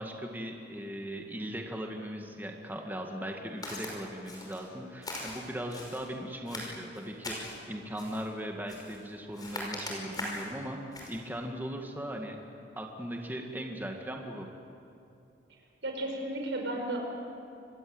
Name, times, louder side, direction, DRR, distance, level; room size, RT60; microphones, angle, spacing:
voice 1, 0.0-12.4 12.8-14.5, equal, 10° right, 2 dB, 2.0 m, -38 dB
Walk footsteps, 3.6-3.9 4.3-4.7 5.0-6.0 6.5-7.6 8.0-8.3 8.7-9.0 9.3-10.5 10.9-11.2, left 1 dB, 20° left, 5.6 m, -40 dB
voice 2, 15.8-17.0, right 1 dB, 80° right, 1 dB, 5.1 m, -33 dB
26.5 x 21.5 x 8.0 m, 2.8 s
head